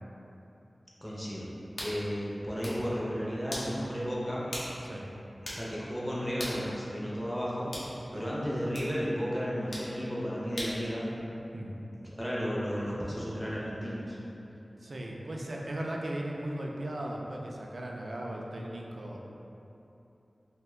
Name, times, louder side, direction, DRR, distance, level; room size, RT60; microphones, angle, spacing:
voice 1, 1.0-1.5 1.8-4.5 5.6-7.7 8.1-11.1 12.2-14.2, equal, 5° left, -7 dB, 0.5 m, -33 dB
sound 1, 1.8-2.0 2.4-2.8 3.5-3.7 4.5-4.7 5.0-5.1 5.4-5.7 6.4-6.6 7.7-7.9 8.7-8.9 9.7-9.9 10.6-10.8, left 1 dB, 85° left, 0.6 m, -38 dB
voice 2, 14.8-19.2, right 1 dB, 60° right, -1 dB, 0.3 m, -37 dB
2.6 x 2.1 x 3.6 m, 2.9 s
wide cardioid pair, 80°, 0 cm